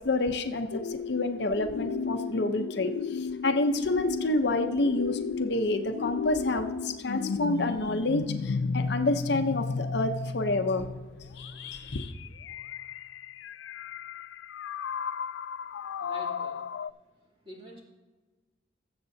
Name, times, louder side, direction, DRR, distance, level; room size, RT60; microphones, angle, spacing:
voice 1, 0.0-10.9 11.3-12.1, left 2 dB, 65° left, 6 dB, 0.7 m, -28 dB
sound 1, 0.7-16.9, left 5 dB, 85° left, 0.3 m, -34 dB
voice 2, 16.0-16.6 17.4-17.8, right 1 dB, 30° right, -3 dB, 2.7 m, -45 dB
19.5 x 7.9 x 2.7 m, 1.3 s
head